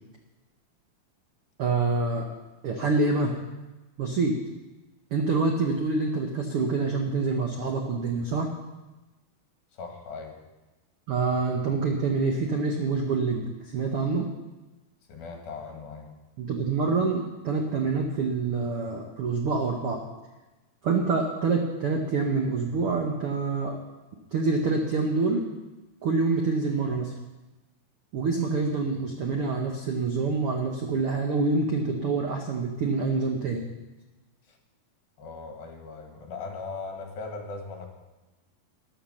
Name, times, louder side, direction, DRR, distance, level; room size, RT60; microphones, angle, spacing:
voice 1, 1.6-2.3 2.6-3.3 4.0-4.4 5.1-8.5 11.1-14.3 16.4-20.0 20.8-23.8 24.3-25.5 26.0-27.1 28.1-33.7, right 4 dB, 75° right, 2 dB, 1.3 m, -26 dB
voice 2, 9.7-10.3 15.1-16.1 35.2-37.9, left 4 dB, 75° left, 2 dB, 3.8 m, -38 dB
13.5 x 10.0 x 6.5 m, 1.1 s
omnidirectional pair, 4.2 m